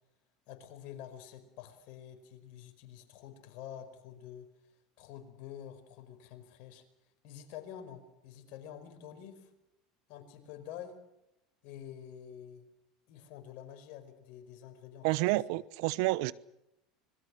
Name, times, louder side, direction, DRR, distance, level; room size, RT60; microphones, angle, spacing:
voice 1, 0.5-4.5 5.0-6.8 7.2-9.5 10.1-11.0 11.6-12.7 13.1-15.1 15.3-15.4, left 9 dB, 60° left, 7 dB, 5.0 m, -48 dB
voice 2, 15.0-16.3, right 19 dB, 65° right, 20 dB, 0.9 m, -29 dB
25.5 x 21.5 x 6.4 m, 0.86 s
hypercardioid pair, 85°, 3 cm